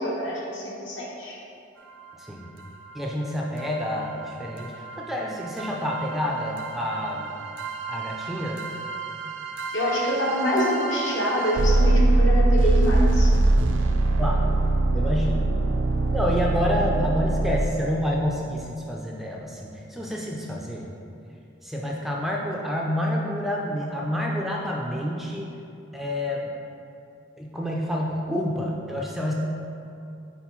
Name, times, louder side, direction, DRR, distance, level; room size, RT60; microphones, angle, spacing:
voice 1, 0.0-1.4 9.7-13.3, equal, 70° left, -4 dB, 1.3 m, -26 dB
sound 1, 1.8-1.9 2.6-2.7 3.0-3.1 3.6-18.0, right 2 dB, 70° right, 0.5 m, -24 dB
voice 2, 2.1-2.5 2.9-7.3 7.9-8.6 14.2-14.6 14.9-15.6 16.1-20.9 21.6-25.5 25.9-26.5 27.4-29.3, equal, ahead, -2 dB, 0.3 m, -28 dB
4.4 x 4.2 x 5.5 m, 2.6 s
head